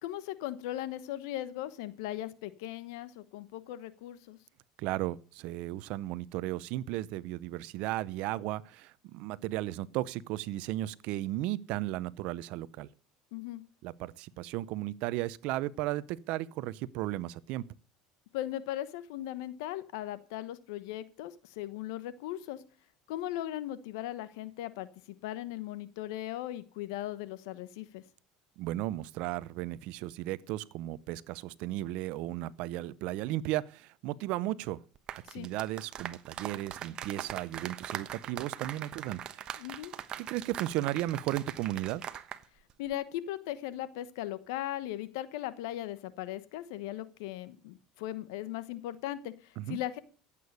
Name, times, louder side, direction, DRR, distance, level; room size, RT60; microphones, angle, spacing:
voice 1, 0.0-4.4 13.3-13.6 18.3-22.6 23.1-28.0 35.3-35.5 39.6-39.9 42.8-50.0, left 13 dB, 80° left, 1.1 m, -38 dB
voice 2, 4.8-12.9 13.8-17.6 28.6-34.8 35.1-39.5 40.2-42.0 49.6-49.8, right 15 dB, 65° right, 0.7 m, -35 dB
sound 1, 35.0-42.4 42.7-42.9, right 9 dB, 45° right, 1.1 m, -41 dB
14.5 x 8.5 x 6.7 m
supercardioid pair, 105°, 2 cm